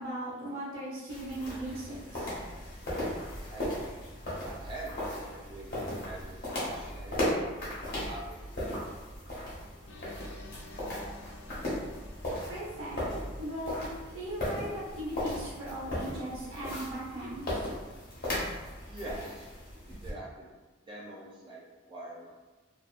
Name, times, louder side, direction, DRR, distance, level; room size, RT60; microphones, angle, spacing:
voice 1, 0.0-2.3 12.5-13.0 13.4-17.7, right 1 dB, 90° right, -6 dB, 0.9 m, -38 dB
sound 1, 1.1-20.1, left 1 dB, 45° left, 0.9 m, -37 dB
voice 2, 4.5-8.4 18.9-19.5 19.9-20.5 20.8-21.6 21.9-22.3, right 2 dB, 25° right, -6 dB, 0.4 m, -44 dB
sound 2, 9.9-14.8, left 2 dB, 65° left, 0.4 m, -54 dB
2.7 x 2.1 x 2.4 m, 1.2 s
head